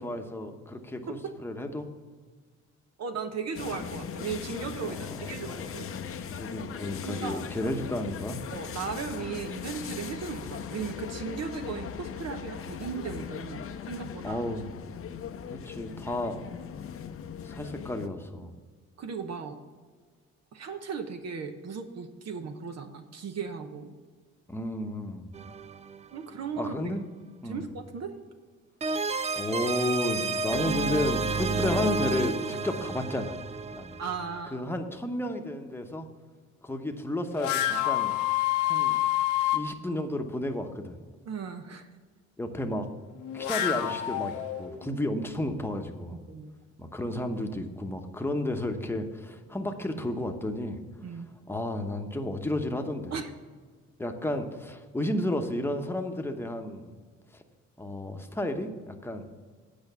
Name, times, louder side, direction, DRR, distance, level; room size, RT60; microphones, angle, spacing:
voice 1, 0.0-1.9 4.9-5.0 5.4-8.4 14.2-14.7 15.5-16.4 17.4-18.5 24.5-25.3 26.6-27.1 27.4-27.7 29.4-33.4 33.7-34.0 34.5-36.1 36.6-38.2 38.6-39.0 39.4-41.0 42.4-42.9 43.3-46.2 46.8-50.8 51.5-53.1 54.0-56.9 57.3-57.4 57.8-59.3, left 1 dB, 10° left, 4 dB, 1.0 m, -32 dB
voice 2, 3.0-5.9 7.0-7.4 8.5-14.4 19.0-19.6 20.5-23.9 26.1-26.9 27.4-28.1 34.0-34.7 41.3-41.9 46.3-46.6 51.0-51.3 53.1-53.3, right 5 dB, 60° right, 7 dB, 0.9 m, -36 dB
sound 1, 3.5-18.1, left 7 dB, 45° left, 0.7 m, -39 dB
sound 2, 25.3-26.4 28.8-34.4, right 4 dB, 25° right, 0.4 m, -31 dB
sound 3, 37.4-39.6 43.2-44.9, left 13 dB, 90° left, 1.0 m, -27 dB
8.9 x 5.2 x 7.0 m, 1.5 s
cardioid pair, 90°, 30 cm